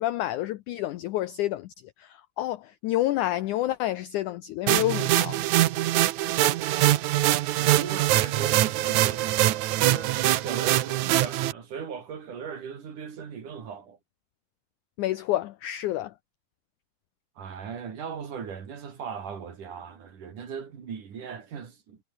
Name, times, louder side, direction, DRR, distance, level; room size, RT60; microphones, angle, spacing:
voice 1, 0.0-1.7 2.0-5.4 15.0-16.1, left 15 dB, 85° left, 1.7 m, -29 dB
sound 1, 4.7-11.5, right 15 dB, 75° right, 1.8 m, -23 dB
voice 2, 7.6-14.0 17.4-22.0, right 6 dB, 55° right, 4.5 m, -38 dB
omnidirectional pair, 4.4 m